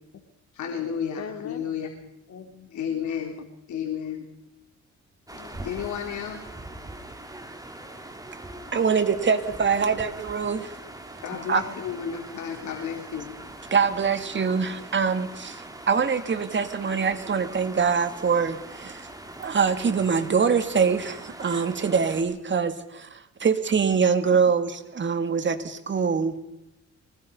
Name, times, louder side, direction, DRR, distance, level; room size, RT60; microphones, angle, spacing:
voice 1, 0.5-1.9 2.7-3.4 3.7-4.3 5.6-6.4 11.2-13.4, left 8 dB, 75° left, 1 dB, 3.7 m, -32 dB
voice 2, 1.2-2.7 5.3-5.7, left 6 dB, 55° left, 7 dB, 2.5 m, -42 dB
sound 1, 5.3-22.2, right 1 dB, 10° right, 3.3 m, -42 dB
voice 3, 8.7-10.7 11.5-11.6 13.7-19.1 19.4-26.5, right 6 dB, 40° right, 10 dB, 2.2 m, -24 dB
24.5 x 19.5 x 5.5 m, 0.93 s
cardioid pair, 90°, 30 cm